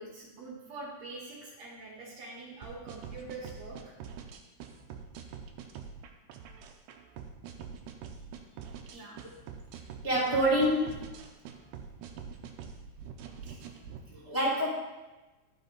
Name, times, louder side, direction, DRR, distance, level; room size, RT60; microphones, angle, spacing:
voice 1, 0.0-3.9 8.9-9.3, right 2 dB, 60° right, -4 dB, 2.7 m, -44 dB
sound 1, 2.6-14.0, right 7 dB, 85° right, 2.2 m, -45 dB
voice 2, 10.0-11.0 13.5-13.6 14.1-14.7, equal, 5° left, -9 dB, 2.2 m, -27 dB
13.0 x 5.0 x 4.0 m, 1.1 s
omnidirectional pair, 3.6 m